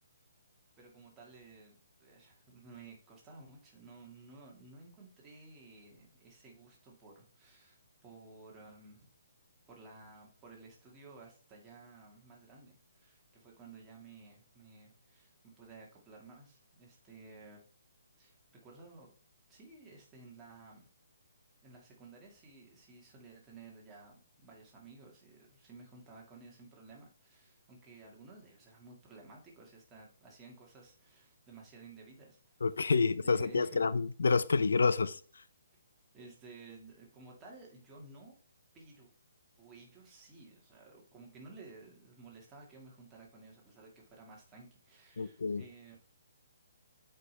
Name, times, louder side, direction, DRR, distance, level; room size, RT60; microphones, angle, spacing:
voice 1, 0.8-9.1 9.7-17.6 18.2-18.4 18.6-19.1 19.5-20.8 21.6-32.5 32.8-33.9 36.1-38.4 38.7-39.1 39.6-46.0, right 3 dB, 15° right, 1.9 m, -55 dB
voice 2, 32.6-35.2 45.2-45.6, left 4 dB, 85° left, 0.5 m, -28 dB
8.2 x 5.0 x 3.3 m
hypercardioid pair, 165°, 0 cm